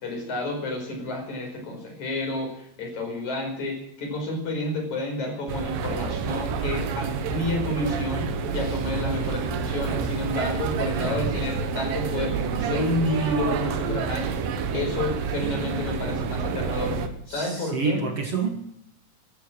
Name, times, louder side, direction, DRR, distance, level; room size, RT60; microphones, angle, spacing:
voice 1, 0.0-8.2 8.5-14.4 14.7-17.0 17.3-18.0, left 2 dB, 55° left, 2 dB, 6.3 m, -30 dB
sound 1, 5.5-17.1, right 5 dB, 85° right, 3.1 m, -28 dB
voice 2, 11.0-11.3 17.3-18.5, right 5 dB, 55° right, 4 dB, 2.1 m, -28 dB
14.5 x 13.0 x 7.5 m, 0.76 s
omnidirectional pair, 3.9 m